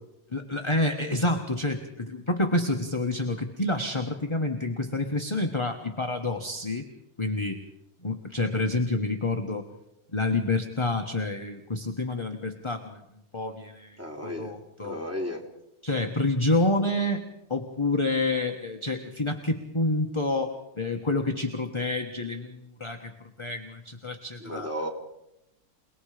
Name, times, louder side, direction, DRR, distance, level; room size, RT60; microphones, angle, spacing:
voice 1, 0.3-6.9 7.2-7.6 8.0-9.7 10.1-13.0 13.3-14.9 15.8-17.2 17.5-23.1 23.4-24.7, left 2 dB, 20° left, 4 dB, 1.3 m, -28 dB
voice 2, 14.0-14.5 14.8-15.4 24.4-24.9, left 1 dB, 10° right, 1 dB, 3.5 m, -33 dB
28.5 x 20.0 x 5.1 m, 0.84 s
omnidirectional pair, 1.8 m